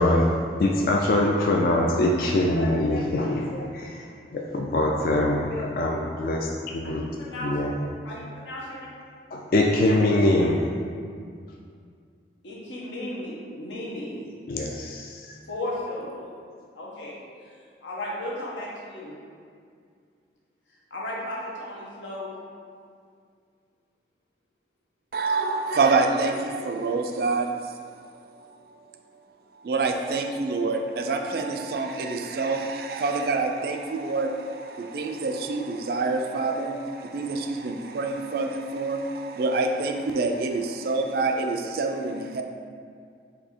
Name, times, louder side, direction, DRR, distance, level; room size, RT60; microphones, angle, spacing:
voice 1, 0.0-4.1 4.3-7.0 7.4-7.8 9.3-10.6 14.5-15.3, left 1 dB, 50° left, 0 dB, 0.3 m, -23 dB
voice 2, 8.4-8.9 12.4-14.2 15.5-16.3 16.7-17.1 17.8-19.1 20.9-22.3, left 1 dB, 90° left, -5 dB, 1.0 m, -34 dB
voice 3, 25.1-27.5 29.6-42.4, right 3 dB, 55° right, 4 dB, 0.3 m, -26 dB
4.3 x 2.8 x 4.3 m, 2.2 s
head